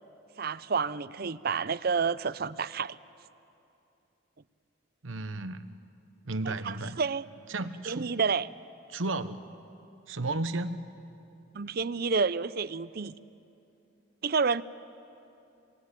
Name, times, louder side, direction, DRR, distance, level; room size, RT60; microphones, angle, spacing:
voice 1, 0.4-3.0 6.5-7.2 7.9-8.5 11.5-13.1 14.2-14.6, right 5 dB, 50° right, 16 dB, 0.5 m, -29 dB
voice 2, 5.0-5.7 6.2-7.0 7.5-8.2 8.9-9.4 10.1-10.9, right 2 dB, 80° right, 11 dB, 1.1 m, -33 dB
27.5 x 19.5 x 9.8 m, 2.7 s
head